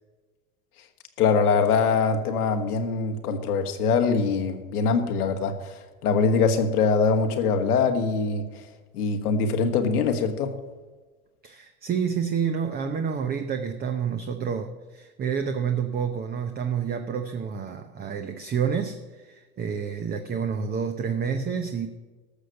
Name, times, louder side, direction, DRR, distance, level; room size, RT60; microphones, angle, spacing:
voice 1, 1.2-8.4 8.9-10.5, left 5 dB, 80° left, 5 dB, 1.7 m, -23 dB
voice 2, 11.4-21.9, right 7 dB, 20° right, 6 dB, 0.7 m, -29 dB
13.5 x 6.4 x 6.5 m, 1.3 s
hypercardioid pair, 105°, 45 cm